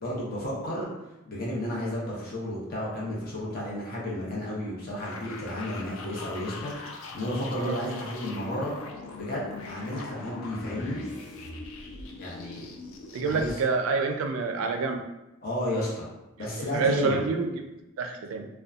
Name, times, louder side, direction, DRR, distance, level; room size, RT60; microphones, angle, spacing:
voice 1, 0.0-0.9 1.3-8.7 9.2-11.0 12.2-12.6 13.2-13.5 15.4-16.1 16.4-17.2, left 1 dB, 45° left, -5 dB, 0.8 m, -32 dB
sound 1, 5.0-13.6, left 3 dB, 80° left, 0.4 m, -41 dB
voice 2, 13.1-15.0 16.7-17.6 18.0-18.5, right 4 dB, 85° right, 5 dB, 0.3 m, -27 dB
2.7 x 2.2 x 2.4 m, 0.97 s
head